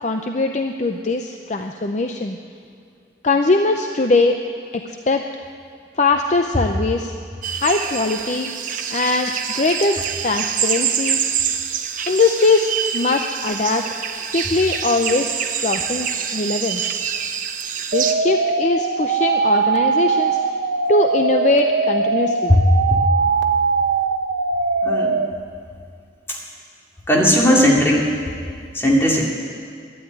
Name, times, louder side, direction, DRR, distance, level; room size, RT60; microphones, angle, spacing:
voice 1, 0.0-2.4 3.2-4.4 4.8-5.2 6.0-7.1 7.5-8.5 8.9-11.2 12.1-13.8 14.3-15.3 15.6-16.9 17.9-20.4 20.9-22.6, left 3 dB, 40° left, 5 dB, 0.6 m, -21 dB
sound 1, 7.4-18.1, right 8 dB, 45° right, 0.8 m, -25 dB
sound 2, 17.9-25.3, right 4 dB, 85° right, 0.8 m, -20 dB
voice 2, 24.8-25.2 27.1-28.1 28.7-29.3, equal, 15° left, -3 dB, 2.4 m, -16 dB
12.0 x 10.5 x 9.7 m, 2.3 s
head